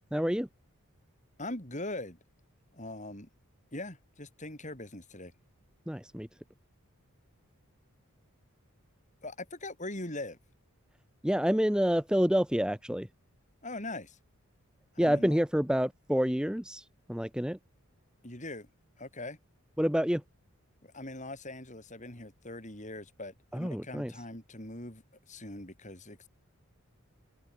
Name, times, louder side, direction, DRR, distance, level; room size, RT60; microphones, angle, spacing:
voice 1, 0.1-0.5 5.9-6.3 11.2-13.1 15.0-17.6 19.8-20.2 23.5-24.1, equal, 5° right, 1.1 m, -28 dB
voice 2, 1.4-2.2 2.7-3.3 3.7-5.3 9.2-10.4 13.6-14.2 14.9-15.4 18.2-18.7 19.0-19.4 20.8-26.3, left 2 dB, 35° left, 6.6 m, -41 dB
head